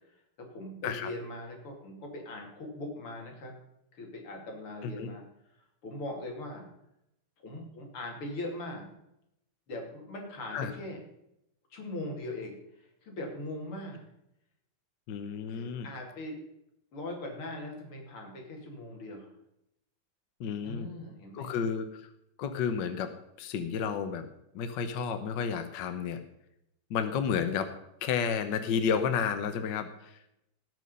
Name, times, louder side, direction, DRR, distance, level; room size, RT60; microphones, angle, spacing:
voice 1, 0.1-3.6 3.9-5.2 5.8-6.7 7.4-8.9 9.7-11.0 11.7-14.1 15.5-16.5 16.9-19.3 20.6-21.5, left 1 dB, 90° left, 1 dB, 3.5 m, -40 dB
voice 2, 15.1-15.9 20.4-20.9 21.3-22.1 22.4-23.1 23.4-24.3 24.5-26.2 26.9-27.7 28.0-30.3, left 7 dB, 65° left, 9 dB, 1.5 m, -31 dB
18.0 x 6.3 x 5.4 m, 0.81 s
omnidirectional pair, 2.3 m